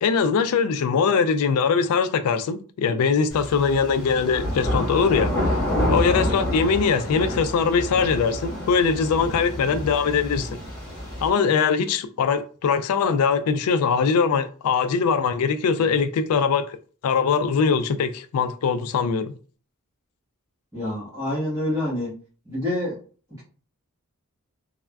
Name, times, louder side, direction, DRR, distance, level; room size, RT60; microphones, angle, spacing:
voice 1, 0.0-5.6 5.9-10.5 11.2-16.8 17.0-19.3, left 5 dB, 75° left, 0.3 m, -22 dB
sound 1, 3.3-11.3, left 1 dB, 15° left, 1.5 m, -28 dB
voice 2, 20.7-22.1 22.4-23.0, left 1 dB, 15° right, 1.1 m, -27 dB
3.3 x 2.1 x 2.2 m
head